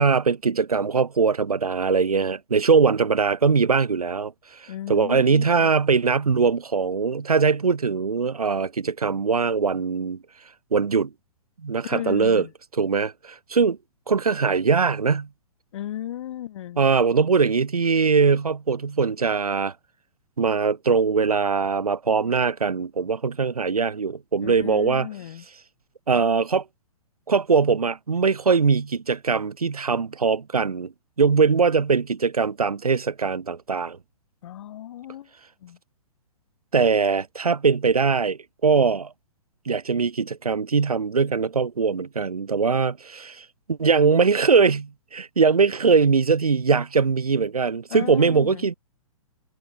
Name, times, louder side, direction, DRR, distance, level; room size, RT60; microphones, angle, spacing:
voice 1, 0.0-10.2 10.7-11.1 11.6-12.4 12.8-13.8 14.1-15.3 16.8-19.7 20.4-25.1 26.1-26.6 27.3-30.9 31.2-34.0 36.7-39.1 39.7-48.7, right 5 dB, 85° right, 0.9 m, -21 dB
voice 2, 4.7-5.7 11.8-12.5 15.7-16.8 24.4-25.5 34.4-35.3 35.6-35.8 47.9-48.7, left 12 dB, 55° left, 1.1 m, -35 dB
figure-of-eight pair, 120°, 18 cm